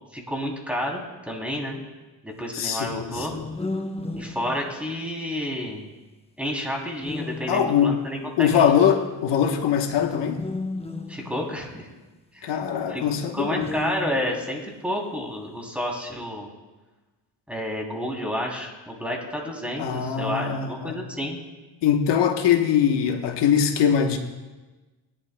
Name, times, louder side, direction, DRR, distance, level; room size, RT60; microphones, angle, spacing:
voice 1, 0.1-1.8 2.2-3.3 4.1-5.9 6.4-8.7 11.1-11.9 12.3-12.5 12.9-13.0 13.3-16.5 17.5-21.5, equal, 5° right, -1 dB, 2.9 m, -30 dB
voice 2, 2.5-3.5 7.5-7.9 8.4-10.4 12.4-13.7 19.8-21.0 21.8-24.2, left 8 dB, 80° left, 4 dB, 1.1 m, -22 dB
sound 1, 3.1-5.4 7.0-8.2 9.9-12.2 13.5-14.6, left 2 dB, 15° left, 0.9 m, -34 dB
20.5 x 11.5 x 2.2 m, 1.2 s
cardioid pair, 90°, 41 cm